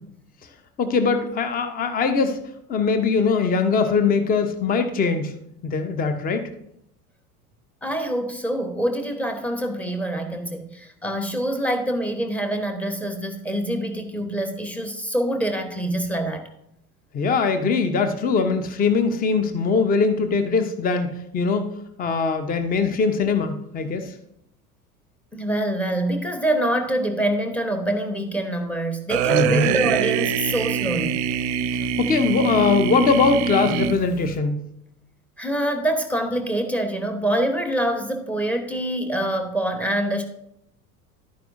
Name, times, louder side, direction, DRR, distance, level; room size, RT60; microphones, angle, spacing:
voice 1, 0.8-2.4 2.7-5.3 5.6-6.5 17.1-21.1 21.3-21.7 22.0-24.1 29.3-29.8 32.0-34.6, left 4 dB, 20° left, 8 dB, 0.8 m, -21 dB
voice 2, 7.8-16.4 25.3-31.2 35.4-40.2, right 1 dB, 5° left, 5 dB, 1.1 m, -25 dB
sound 1, 29.1-34.4, right 8 dB, 50° right, 0.5 m, -24 dB
11.5 x 9.2 x 2.6 m, 0.78 s
figure-of-eight pair, 75°, 46 cm